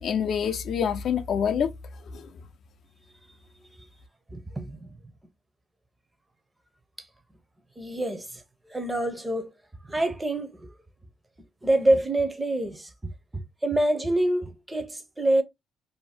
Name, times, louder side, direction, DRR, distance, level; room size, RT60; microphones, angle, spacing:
voice 1, 0.0-1.7 2.0-2.3, left 7 dB, 65° left, 0.4 m, -26 dB
voice 2, 4.3-4.9 7.8-8.4 8.7-9.5 9.9-10.7 11.6-15.4, right 1 dB, 15° right, 0.6 m, -26 dB
2.6 x 2.0 x 3.3 m
cardioid pair, 90°, 0 cm